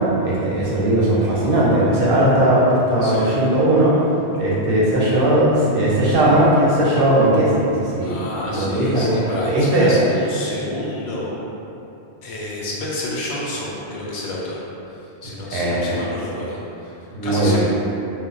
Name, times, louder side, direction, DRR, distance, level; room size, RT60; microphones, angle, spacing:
voice 1, 0.2-4.0 4.3-8.2 8.5-9.9 15.5-15.9 17.1-17.6, right 1 dB, 65° right, -6 dB, 0.7 m, -18 dB
voice 2, 8.0-11.3 12.2-14.6 14.9-17.6, left 1 dB, 75° left, -5 dB, 0.9 m, -30 dB
2.2 x 2.1 x 3.7 m, 2.9 s
omnidirectional pair, 1.1 m